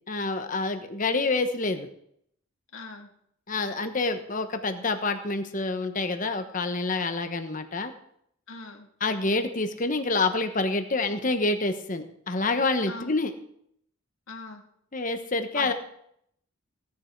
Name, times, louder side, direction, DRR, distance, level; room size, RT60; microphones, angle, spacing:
voice 1, 0.1-1.9 3.5-7.9 9.0-13.3 14.9-15.7, left 3 dB, 40° left, 7 dB, 1.2 m, -27 dB
voice 2, 2.7-3.1 8.5-8.9 12.8-13.1 14.3-14.6 15.5-15.7, left 3 dB, 75° left, 2 dB, 2.2 m, -39 dB
16.5 x 9.7 x 4.7 m, 0.70 s
head